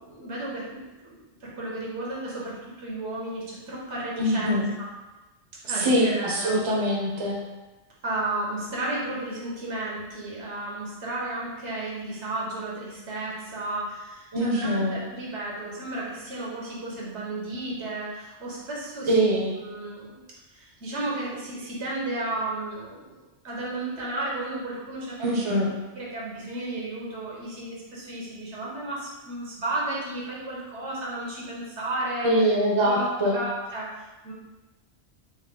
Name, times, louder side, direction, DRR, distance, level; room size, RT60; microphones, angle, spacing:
voice 1, 0.0-4.5 5.6-6.5 8.0-19.3 19.5-20.2 20.5-25.4 26.0-32.3 32.8-34.3, right 2 dB, 80° right, -4 dB, 1.3 m, -33 dB
voice 2, 4.2-4.7 5.7-7.4 14.3-15.0 19.1-19.5 25.2-25.7 32.2-33.4, right 1 dB, 30° right, -2 dB, 0.6 m, -23 dB
4.4 x 2.0 x 3.6 m, 1.1 s
omnidirectional pair, 1.1 m